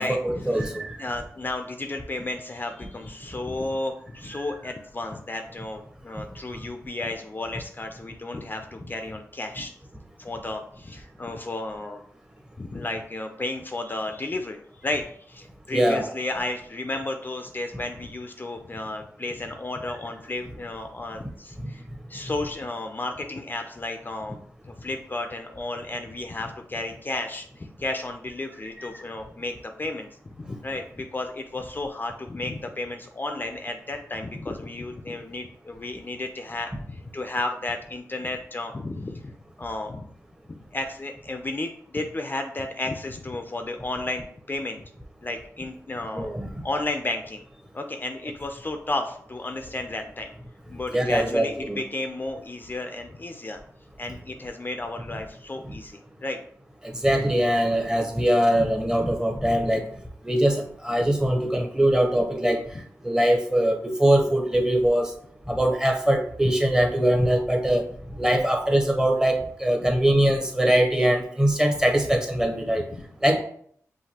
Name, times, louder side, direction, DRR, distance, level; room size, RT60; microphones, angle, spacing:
voice 1, 0.0-1.0 15.7-16.1 28.8-28.9 46.1-46.6 50.9-51.8 56.8-59.8 60.2-62.6 63.0-65.1 65.5-72.9 73.2-73.4, right 1 dB, 10° right, 3 dB, 0.9 m, -22 dB
voice 2, 1.0-9.7 10.2-12.0 12.6-21.8 22.1-24.4 24.6-30.1 30.4-40.1 40.5-44.8 45.2-46.3 46.6-47.4 47.7-50.3 50.7-53.6 54.0-56.4 72.9-73.0, left 2 dB, 35° left, 5 dB, 0.4 m, -33 dB
5.7 x 2.7 x 2.8 m, 0.62 s
cardioid pair, 60°, 6 cm